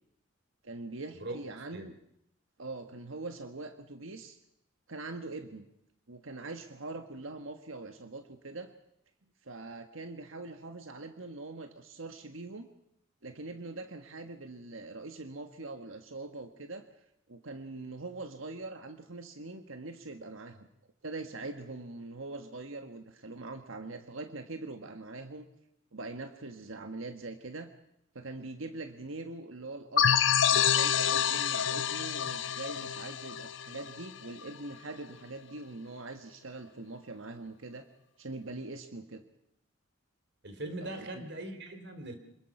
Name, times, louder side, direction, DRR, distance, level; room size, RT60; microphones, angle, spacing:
voice 1, 0.6-2.0 2.6-4.4 4.9-5.7 6.1-8.7 9.4-12.7 13.2-16.8 17.3-20.7 21.0-25.5 25.9-27.7 28.1-30.1 30.5-37.8 38.2-39.2 40.8-41.3, right 2 dB, 80° right, 7 dB, 1.5 m, -43 dB
sound 1, 30.0-34.4, left 8 dB, 65° left, 0.8 m, -27 dB
voice 2, 40.4-42.2, right 1 dB, 55° right, 7 dB, 3.2 m, -40 dB
26.0 x 21.0 x 6.0 m, 0.79 s
head